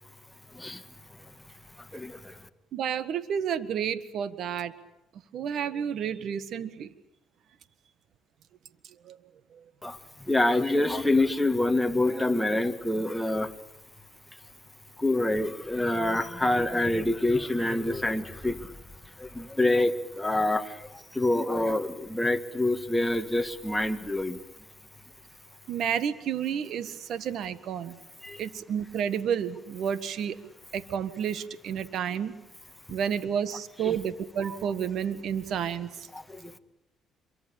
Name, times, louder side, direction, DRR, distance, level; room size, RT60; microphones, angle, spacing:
voice 1, 1.9-2.4 9.8-10.0 10.3-13.5 15.0-18.7 19.2-24.4 28.2-28.4 33.8-34.0 36.1-36.6, left 2 dB, 5° left, 6 dB, 2.0 m, -26 dB
voice 2, 2.7-4.7 5.3-6.9 9.1-9.2 25.7-28.0 28.4-30.4 30.7-32.3 32.9-35.9, right 8 dB, 65° right, 13 dB, 1.7 m, -30 dB
26.5 x 23.5 x 8.7 m, 0.92 s
cardioid pair, 90°, 0 cm